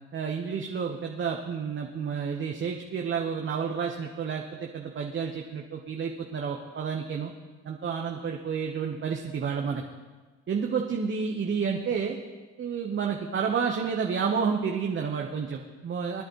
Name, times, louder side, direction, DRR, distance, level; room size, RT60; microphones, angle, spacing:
voice 1, 0.1-7.3 7.6-9.8 10.5-12.2 12.6-16.2, right 6 dB, 35° right, 1 dB, 1.2 m, -30 dB
21.0 x 10.5 x 3.2 m, 1.3 s
hypercardioid pair, 65°, 35 cm